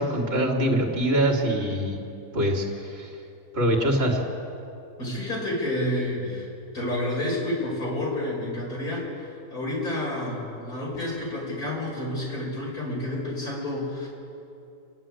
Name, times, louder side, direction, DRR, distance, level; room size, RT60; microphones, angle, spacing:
voice 1, 0.0-2.0 2.3-3.1 3.5-4.2, right 1 dB, 40° right, 1 dB, 2.7 m, -24 dB
voice 2, 5.0-6.5 6.7-9.0 9.5-14.1, left 1 dB, 70° left, -4 dB, 6.6 m, -29 dB
29.0 x 11.0 x 9.0 m, 2.7 s
omnidirectional pair, 1.6 m